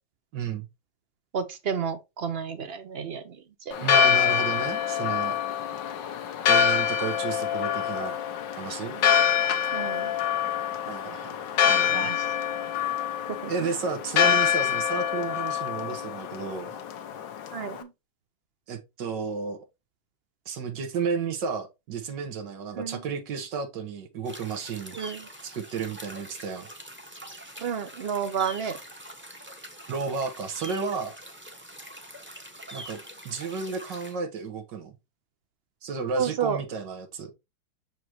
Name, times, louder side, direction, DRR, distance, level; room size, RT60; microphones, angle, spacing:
voice 1, 0.3-0.7 3.8-5.3 6.5-8.1 8.6-9.0 10.9-11.4 11.7-12.1 13.5-16.7 18.7-19.6 20.4-25.0 25.4-26.7 29.9-31.1 32.7-33.0 33.2-35.0 35.8-37.3, right 5 dB, 80° right, 1.8 m, -32 dB
voice 2, 1.3-3.4 3.7-3.8 8.9-9.1 9.7-10.1 11.9-12.2 13.4-13.5 17.5-17.9 22.7-23.0 24.9-25.3 27.6-28.8 36.2-36.6, right 7 dB, 55° right, 0.7 m, -31 dB
Church bell, 3.7-17.8, left 9 dB, 85° left, 1.5 m, -26 dB
sound 1, 24.2-34.2, right 1 dB, 10° right, 0.9 m, -44 dB
6.5 x 5.0 x 2.9 m
omnidirectional pair, 1.9 m